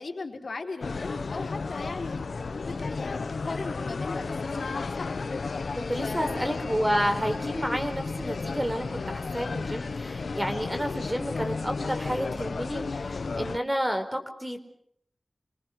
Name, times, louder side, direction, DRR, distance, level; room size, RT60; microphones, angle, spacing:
voice 1, 0.0-2.3 2.6-5.1 6.0-6.5, left 3 dB, 70° left, 3 dB, 4.5 m, -38 dB
sound 1, 0.8-13.6, left 4 dB, 90° left, 1.0 m, -33 dB
voice 2, 5.8-14.6, equal, 10° right, 6 dB, 4.4 m, -30 dB
28.5 x 24.5 x 6.3 m, 0.68 s
wide cardioid pair, 90°, 0 cm